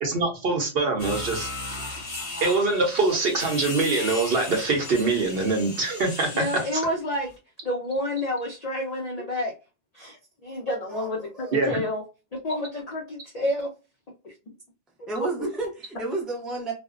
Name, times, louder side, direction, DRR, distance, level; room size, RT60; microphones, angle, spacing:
voice 1, 0.0-1.8 2.4-6.4 6.7-6.8 11.5-11.7, right 3 dB, 55° right, 0.8 m, -24 dB
sound 1, 1.0-6.9, left 2 dB, 40° left, 0.8 m, -36 dB
voice 2, 6.3-7.3 7.6-9.5 9.9-12.0 12.3-13.7 14.2-14.3 15.4-15.5, left 1 dB, 80° left, 0.3 m, -29 dB
voice 3, 10.9-11.8 15.1-16.7, right 3 dB, ahead, 0.3 m, -32 dB
2.5 x 2.1 x 2.4 m
omnidirectional pair, 1.3 m